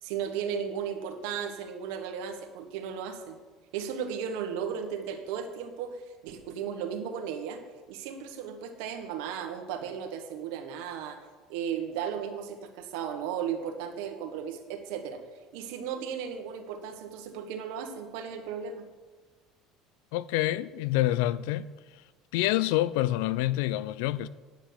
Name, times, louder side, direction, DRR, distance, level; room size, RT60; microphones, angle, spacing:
voice 1, 0.0-3.4 3.7-7.6 7.9-11.2 11.5-15.2 15.5-18.8, right 7 dB, 85° right, 1.4 m, -35 dB
voice 2, 20.1-21.7 22.3-24.3, left 15 dB, 85° left, 0.4 m, -27 dB
9.5 x 7.3 x 7.0 m
cardioid pair, 125°, 0 cm